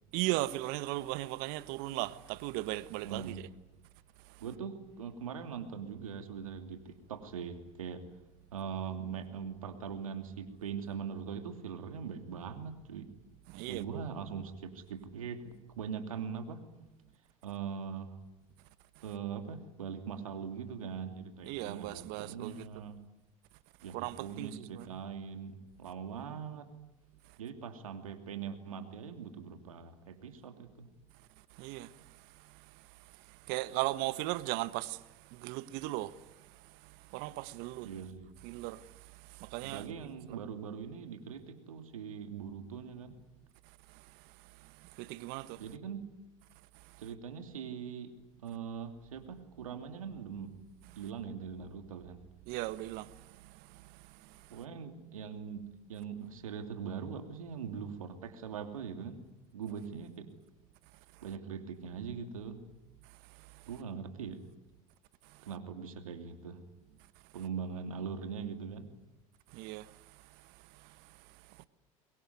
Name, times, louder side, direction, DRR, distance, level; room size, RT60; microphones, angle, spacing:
voice 1, 0.1-3.3 13.5-14.0 21.5-22.7 23.9-24.9 31.6-31.9 33.5-35.0 35.4-36.1 37.1-37.9 38.4-38.8 39.4-40.1 45.0-45.6 52.5-53.1 69.5-69.8, right 18 dB, 65° right, 1.3 m, -36 dB
voice 2, 3.0-3.4 4.4-8.1 8.5-13.1 13.7-16.6 17.4-18.2 19.0-23.0 23.8-26.7 27.4-30.9 37.8-38.3 39.6-43.2 45.6-46.1 47.0-48.1 48.4-50.5 51.0-52.2 54.5-59.2 59.5-60.3 61.2-62.6 63.7-64.4 65.4-66.6 67.3-68.9, right 7 dB, 90° right, 2.8 m, -41 dB
24.5 x 22.0 x 9.5 m
hypercardioid pair, 80°, 17 cm